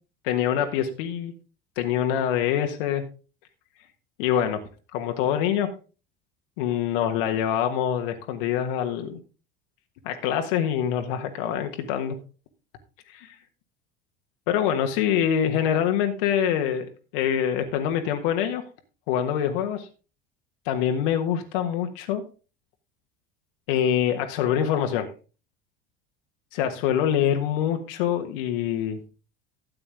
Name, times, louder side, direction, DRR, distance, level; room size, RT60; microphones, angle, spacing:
voice 1, 0.2-1.3 1.8-3.0 4.2-4.6 4.9-5.7 6.6-9.2 10.0-12.2 14.5-16.9 17.1-18.6 19.1-19.9 20.6-22.2 23.7-25.1 26.5-29.0, left 9 dB, 65° left, 6 dB, 1.5 m, -25 dB
13.0 x 8.7 x 3.5 m, 0.33 s
hypercardioid pair, 75°, 29 cm